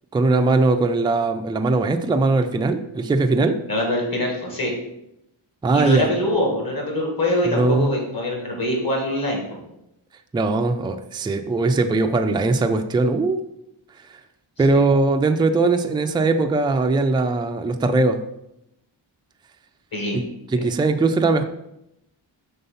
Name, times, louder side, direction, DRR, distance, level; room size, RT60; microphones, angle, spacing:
voice 1, 0.1-3.6 5.6-6.1 7.5-7.9 10.3-13.4 14.6-18.2 20.1-20.2 20.5-21.4, right 3 dB, 10° right, 6 dB, 0.3 m, -20 dB
voice 2, 3.7-4.7 5.7-9.4 14.7-14.8 19.9-20.2, left 1 dB, 45° left, 0 dB, 1.9 m, -24 dB
5.6 x 3.6 x 5.4 m, 0.83 s
wide cardioid pair, 110°, 48 cm